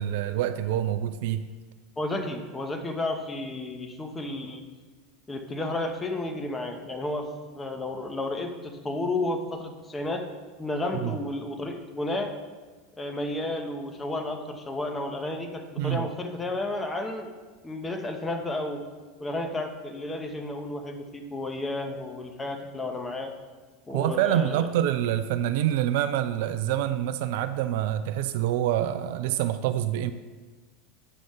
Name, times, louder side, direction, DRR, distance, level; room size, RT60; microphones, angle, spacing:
voice 1, 0.0-1.5 11.0-11.2 15.8-16.1 23.9-30.1, right 11 dB, 60° right, 10 dB, 0.3 m, -26 dB
voice 2, 2.0-4.6 5.3-7.3 7.5-10.2 10.6-12.3 13.0-17.3 17.6-18.8 19.2-23.3 23.9-24.7, left 2 dB, 15° left, 4 dB, 1.0 m, -32 dB
8.8 x 6.1 x 3.8 m, 1.3 s
figure-of-eight pair, 80°, 0 cm